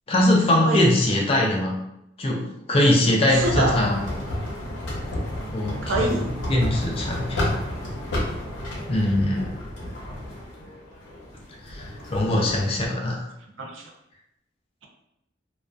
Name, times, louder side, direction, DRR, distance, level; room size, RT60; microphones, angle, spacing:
voice 1, 0.1-1.7 2.2-4.0 5.5-6.1 6.5-7.5 8.9-9.6 11.6-13.3, left 1 dB, 30° left, -1 dB, 0.4 m, -22 dB
sound 1, 3.3-12.9, left 1 dB, 70° left, 0.7 m, -31 dB
voice 2, 3.3-3.8 5.8-6.3 13.6-13.9, right 2 dB, 80° right, 1 dB, 0.5 m, -25 dB
2.5 x 2.3 x 2.3 m, 0.84 s
head